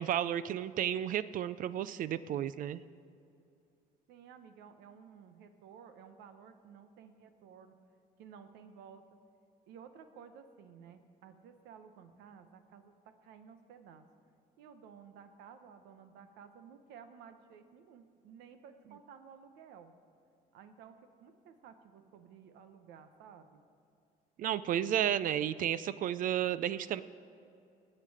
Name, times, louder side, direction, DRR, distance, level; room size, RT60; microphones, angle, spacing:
voice 1, 0.0-2.8 24.4-27.0, right 10 dB, 55° right, 16 dB, 0.4 m, -32 dB
voice 2, 4.1-7.7 8.2-9.0 9.7-14.1 14.6-19.9 20.5-23.6, right 7 dB, 90° right, 9 dB, 0.9 m, -54 dB
18.0 x 7.6 x 4.9 m, 2.5 s
cardioid pair, 110°, 17 cm